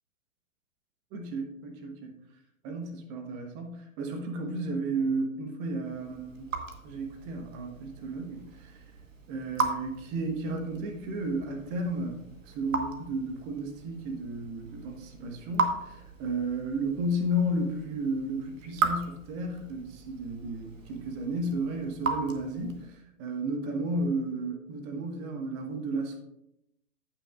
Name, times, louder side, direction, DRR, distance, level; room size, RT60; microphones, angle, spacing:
voice 1, 1.1-2.1 2.6-6.5 6.8-8.8 9.3-26.2, right 1 dB, 25° right, 4 dB, 1.3 m, -33 dB
Raindrop / Drip, 5.8-23.0, right 4 dB, 65° right, 1.4 m, -37 dB
17.0 x 5.9 x 2.4 m, 0.83 s
figure-of-eight pair, 120°, 42 cm